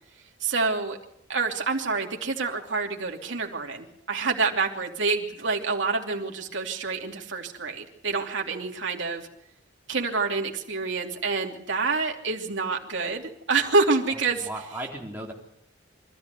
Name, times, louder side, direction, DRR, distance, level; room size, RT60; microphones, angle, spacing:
voice 1, 0.4-1.0 1.3-9.3 9.9-14.5, right 4 dB, 70° right, 2 dB, 2.9 m, -27 dB
voice 2, 14.1-15.3, right 1 dB, 10° right, -2 dB, 3.7 m, -37 dB
24.5 x 14.0 x 8.2 m, 0.76 s
head